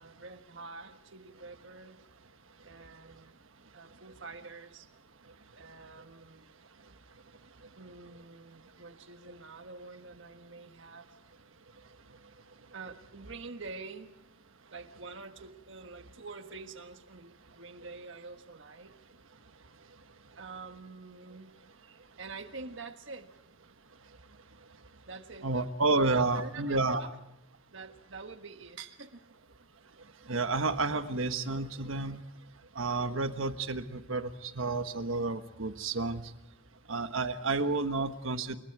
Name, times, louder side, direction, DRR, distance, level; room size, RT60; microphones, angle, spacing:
voice 1, 0.0-2.0 2.6-3.3 3.7-4.9 5.5-6.5 7.8-11.1 12.7-14.2 14.7-18.9 20.3-21.5 21.8-23.3 25.1-27.1 27.7-29.2, right 3 dB, 65° right, 7 dB, 1.5 m, -46 dB
voice 2, 25.4-27.0 30.3-32.2 32.7-36.2 36.9-38.6, right 3 dB, 85° right, 9 dB, 1.3 m, -30 dB
28.0 x 22.5 x 4.8 m, 0.85 s
head